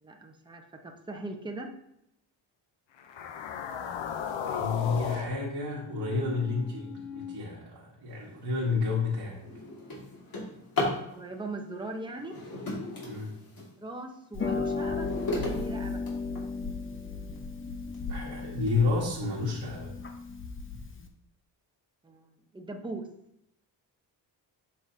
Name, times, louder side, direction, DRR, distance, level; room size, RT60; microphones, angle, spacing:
voice 1, 0.0-1.7 11.1-12.3 13.8-16.0 22.0-23.0, right 2 dB, 10° right, 2 dB, 0.9 m, -40 dB
sound 1, 3.0-7.4, left 7 dB, 75° left, 0.8 m, -37 dB
voice 2, 4.4-9.4 13.0-13.3 18.1-19.9, left 4 dB, 65° right, -5 dB, 1.6 m, -30 dB
Drawer open or close, 8.4-8.6 9.1-11.1 12.1-13.7 14.3-16.7 17.4-17.5 17.9-18.0 18.4-18.8, left 2 dB, 50° left, 2.2 m, -35 dB
Harp, 14.3-21.1, left 4 dB, 25° left, 0.8 m, -35 dB
7.2 x 5.4 x 2.8 m, 0.78 s
cardioid pair, 90°, 46 cm